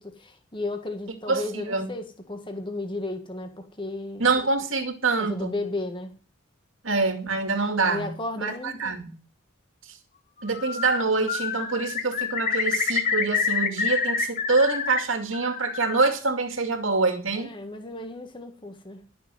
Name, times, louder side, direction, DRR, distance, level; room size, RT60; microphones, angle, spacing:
voice 1, 0.0-4.3 5.2-6.2 7.9-8.9 17.3-19.1, left 2 dB, 25° left, 1.6 m, -34 dB
voice 2, 1.3-1.9 4.2-5.6 6.8-9.1 9.8-9.9 10.4-17.5, right 3 dB, 70° right, 2.3 m, -25 dB
Bird, 10.4-11.0 11.3-15.0 15.3-16.1, left 6 dB, 40° left, 1.6 m, -27 dB
12.0 x 7.0 x 9.1 m
head